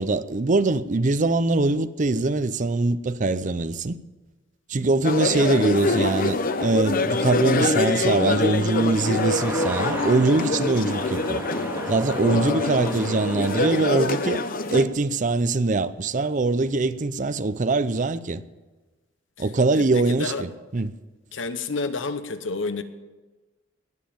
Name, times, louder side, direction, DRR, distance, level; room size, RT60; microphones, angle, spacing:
voice 1, 0.0-4.0 4.7-11.4 11.9-14.4 14.7-18.4 19.4-20.9, right 3 dB, 40° right, 0.6 m, -23 dB
sound 1, 5.0-14.8, left 3 dB, 45° left, 0.8 m, -25 dB
sound 2, 8.2-13.7, right 1 dB, 10° right, 2.1 m, -35 dB
voice 2, 19.4-20.5 21.3-22.8, left 3 dB, 75° left, 1.0 m, -31 dB
19.5 x 7.3 x 8.8 m
head